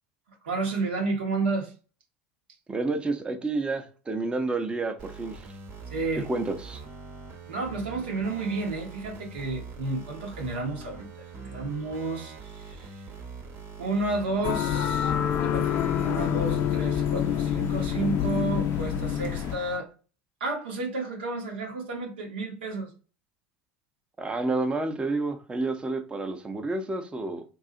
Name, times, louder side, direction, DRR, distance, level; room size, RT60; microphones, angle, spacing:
voice 1, 0.4-1.7 5.9-6.3 7.5-13.0 13.8-15.1 15.4-19.9 20.4-22.9, right 3 dB, 85° right, 0.9 m, -31 dB
voice 2, 2.7-5.5 6.1-6.8 24.2-27.4, right 3 dB, 20° right, 0.6 m, -30 dB
sound 1, 5.0-19.8, right 4 dB, 55° right, 0.9 m, -43 dB
sound 2, 14.4-19.6, left 9 dB, 50° left, 0.4 m, -27 dB
2.7 x 2.4 x 3.7 m
hypercardioid pair, 85°, 5 cm